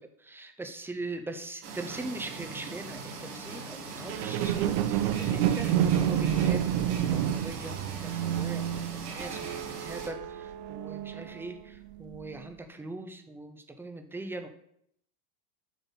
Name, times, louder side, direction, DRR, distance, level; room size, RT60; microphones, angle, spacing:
voice 1, 0.0-14.5, right 2 dB, 5° right, 6 dB, 0.6 m, -41 dB
sound 1, 1.6-10.1, right 4 dB, 85° right, 2.2 m, -41 dB
sound 2, 4.1-11.5 12.1-12.2, right 10 dB, 50° right, 0.5 m, -29 dB
7.3 x 3.9 x 5.6 m, 0.70 s
supercardioid pair, 120°, 45 cm